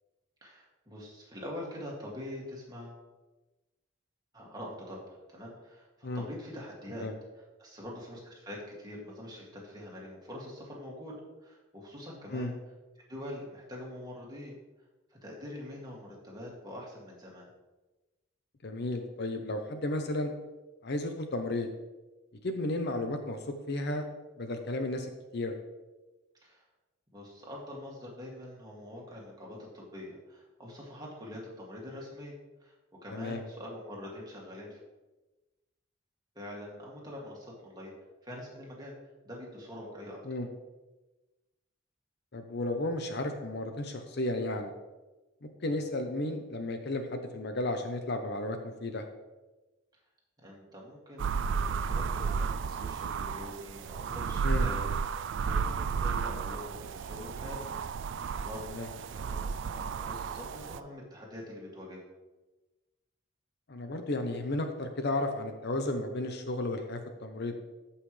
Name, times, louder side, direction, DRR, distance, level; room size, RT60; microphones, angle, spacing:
voice 1, 0.4-3.0 4.3-7.1 7.3-12.5 13.1-14.6 15.2-17.5 26.4-26.6 27.1-32.7 33.0-34.8 36.3-37.9 38.2-40.2 45.7-45.9 50.4-54.9 55.4-62.0, left 1 dB, 20° right, -4 dB, 2.3 m, -44 dB
voice 2, 18.6-20.3 20.8-21.7 22.4-23.4 23.7-24.0 24.4-25.5 33.1-33.4 40.3-40.5 42.3-44.7 45.4-49.0 54.4-54.7 58.7-58.9 63.7-67.5, left 2 dB, 55° left, 6 dB, 0.8 m, -33 dB
sound 1, 51.2-60.8, right 5 dB, 65° right, 0.4 m, -33 dB
14.0 x 5.7 x 3.3 m, 1.1 s
head